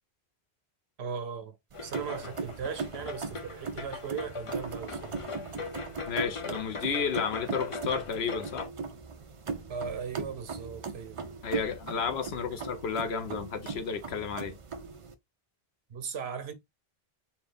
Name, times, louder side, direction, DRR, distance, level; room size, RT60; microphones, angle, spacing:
voice 1, 1.0-1.6 1.8-5.2 9.7-11.2 15.9-16.5, right 6 dB, 80° right, 1.1 m, -38 dB
sound 1, 1.7-8.7, left 4 dB, 35° left, 0.7 m, -40 dB
sound 2, 1.7-15.1, right 5 dB, 45° right, 0.5 m, -39 dB
voice 2, 6.1-8.7 11.4-14.5, left 6 dB, 80° left, 1.0 m, -32 dB
4.3 x 2.4 x 3.4 m
omnidirectional pair, 1.1 m